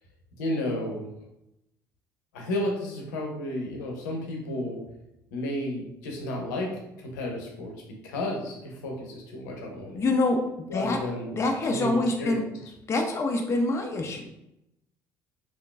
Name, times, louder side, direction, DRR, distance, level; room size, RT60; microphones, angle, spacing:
voice 1, 0.3-1.1 2.3-4.8 5.3-7.7 8.0-9.9 10.7-11.3 11.7-11.9 12.2-12.4, left 1 dB, 70° left, 0 dB, 0.7 m, -32 dB
voice 2, 9.9-11.0 11.3-12.4 12.9-14.3, left 2 dB, 30° left, 3 dB, 0.5 m, -26 dB
3.6 x 2.5 x 2.3 m, 0.85 s
figure-of-eight pair, 55°, 10 cm